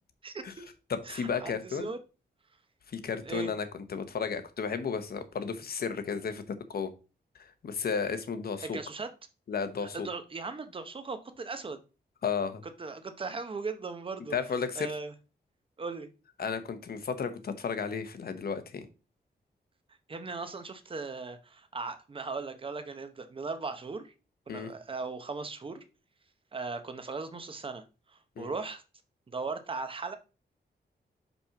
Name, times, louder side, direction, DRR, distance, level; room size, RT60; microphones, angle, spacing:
voice 1, 0.2-0.7 1.0-2.0 3.2-3.5 8.6-9.1 9.8-11.8 12.8-14.3 14.8-15.1 15.8-16.1 20.1-24.1 24.5-25.8 26.5-28.8 29.3-30.2, right 4 dB, 30° right, 0.8 m, -38 dB
voice 2, 0.9-1.9 2.9-6.9 7.4-8.8 9.5-10.1 12.2-12.6 14.3-14.9 16.4-18.9 24.5-24.7 28.4-28.5, left 6 dB, 60° left, 0.9 m, -33 dB
5.4 x 4.3 x 5.8 m
wide cardioid pair, 180°, 18 cm